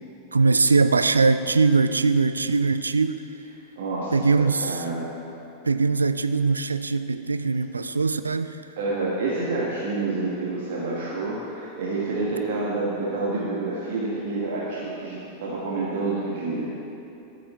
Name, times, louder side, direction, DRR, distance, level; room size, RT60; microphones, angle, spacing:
voice 1, 0.3-3.2 4.1-4.8 5.6-8.6, right 4 dB, 75° right, 11 dB, 0.3 m, -21 dB
voice 2, 3.8-5.1 8.8-16.7, right 3 dB, 55° right, -6 dB, 1.5 m, -28 dB
13.0 x 6.5 x 4.2 m, 2.9 s
figure-of-eight pair, 90°, 0 cm